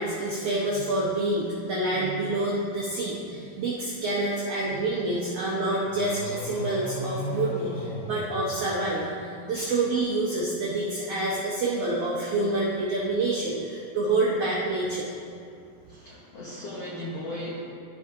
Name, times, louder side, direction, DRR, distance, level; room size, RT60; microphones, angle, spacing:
voice 1, 0.0-15.1 15.8-15.9, right 2 dB, 80° right, -6 dB, 1.4 m, -27 dB
sound 1, 5.8-9.2, left 1 dB, 65° left, 2.3 m, -35 dB
voice 2, 15.9-17.7, left 1 dB, 80° left, -5 dB, 1.4 m, -37 dB
13.5 x 4.8 x 3.6 m, 2.4 s
omnidirectional pair, 4.4 m